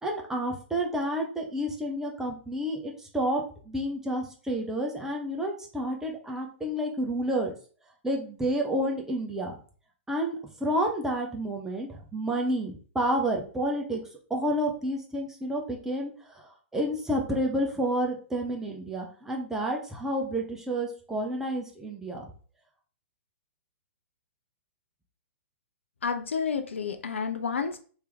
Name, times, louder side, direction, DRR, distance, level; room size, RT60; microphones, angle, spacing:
voice 1, 0.0-7.5 8.0-9.5 10.1-10.3 10.6-14.0 14.3-22.3, right 1 dB, 5° right, 0 dB, 0.8 m, -30 dB
voice 2, 26.0-27.8, left 6 dB, 70° left, 8 dB, 0.4 m, -30 dB
3.4 x 3.0 x 3.4 m, 0.41 s
figure-of-eight pair, 110°, 7 cm